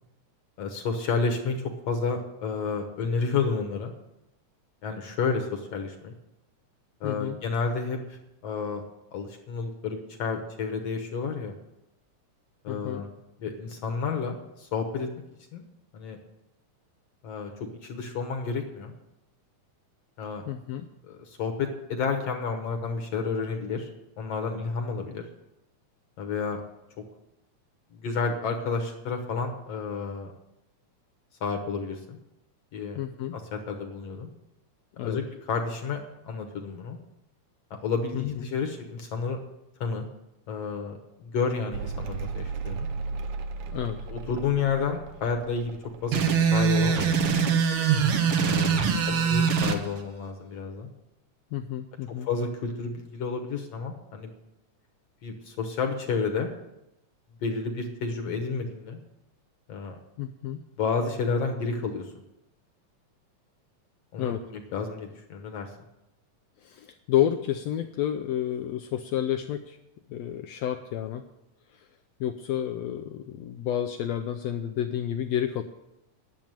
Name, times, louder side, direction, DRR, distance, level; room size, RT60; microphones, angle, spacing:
voice 1, 0.6-3.9 4.8-6.1 7.0-8.2 8.4-8.8 9.1-11.5 12.6-13.1 13.4-15.1 15.5-15.6 15.9-16.2 17.2-18.9 20.2-20.4 21.1-23.9 24.2-25.2 26.2-26.6 28.0-30.3 31.4-32.2 32.7-33.0 33.3-34.3 35.0-37.0 37.7-39.4 39.8-40.1 40.5-42.9 44.1-45.8 46.0-47.3 48.4-50.9 52.3-54.3 55.2-56.5 57.4-59.0 59.7-60.0 60.8-62.1 64.1-65.7, left 5 dB, 60° left, 3 dB, 1.9 m, -30 dB
voice 2, 7.0-7.4 12.7-13.0 20.5-20.9 32.9-33.4 35.0-35.2 38.1-38.5 43.7-44.1 48.9-49.3 51.5-52.3 60.2-60.6 64.2-64.4 66.6-69.8 70.1-71.2 71.7-71.9 72.2-75.6, left 11 dB, 85° left, 6 dB, 1.5 m, -30 dB
Mechanical fan, 41.7-48.6 48.8-49.7, right 4 dB, 80° right, 1.3 m, -37 dB
sound 1, 46.1-49.8, right 6 dB, 60° right, 1.5 m, -23 dB
10.5 x 7.3 x 8.9 m, 0.90 s
omnidirectional pair, 3.6 m